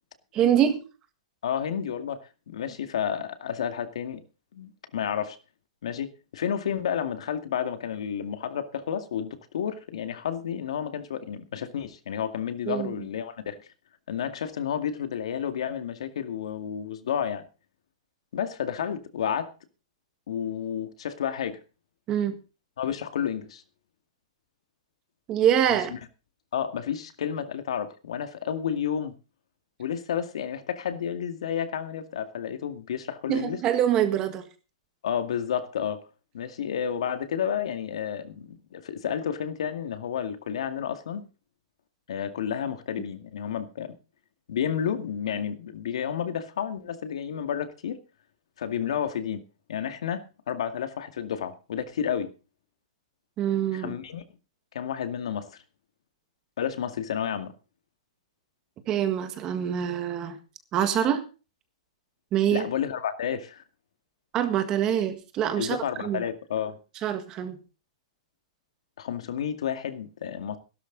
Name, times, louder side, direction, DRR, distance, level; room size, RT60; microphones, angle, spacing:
voice 1, 0.3-0.8 12.7-12.9 22.1-22.4 25.3-25.9 33.3-34.4 53.4-54.0 58.9-60.4 60.7-61.2 62.3-62.7 64.3-66.2 67.0-67.6, right 10 dB, 20° right, 1.7 m, -25 dB
voice 2, 1.4-4.2 4.5-5.4 5.8-13.7 14.1-17.4 18.3-19.5 20.3-21.6 22.8-23.6 25.7-26.0 26.5-29.1 29.8-33.6 35.0-36.0 36.3-41.3 42.1-44.0 44.5-48.0 48.6-49.4 49.7-52.3 53.7-54.2 54.7-55.6 56.6-57.5 62.5-63.6 65.6-66.8 69.0-70.6, left 8 dB, 65° left, 2.1 m, -31 dB
16.5 x 12.5 x 4.0 m
hypercardioid pair, 175°, 3 cm